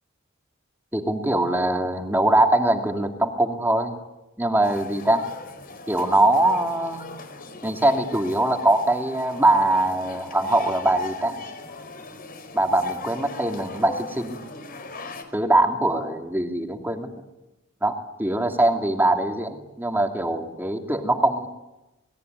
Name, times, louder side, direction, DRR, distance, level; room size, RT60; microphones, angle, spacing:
voice 1, 0.9-3.9 4.4-5.2 5.9-7.1 7.6-11.4 12.5-14.4 15.3-17.1 17.8-21.5, right 1 dB, 10° right, 3 dB, 2.8 m, -22 dB
sound 1, 4.6-15.2, left 3 dB, 45° left, 4.6 m, -40 dB
28.0 x 21.0 x 9.6 m, 1.0 s
head